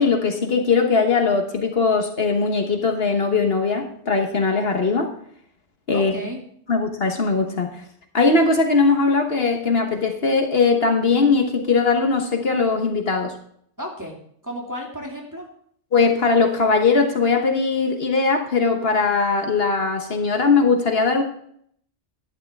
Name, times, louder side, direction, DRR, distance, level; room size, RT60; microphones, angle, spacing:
voice 1, 0.0-5.1 5.9-6.1 6.7-7.8 8.1-13.3 15.9-21.2, left 4 dB, 60° left, 4 dB, 1.4 m, -20 dB
voice 2, 5.9-6.4 13.8-15.5, equal, 15° right, -1 dB, 2.3 m, -33 dB
11.5 x 11.5 x 3.5 m, 0.66 s
omnidirectional pair, 1.2 m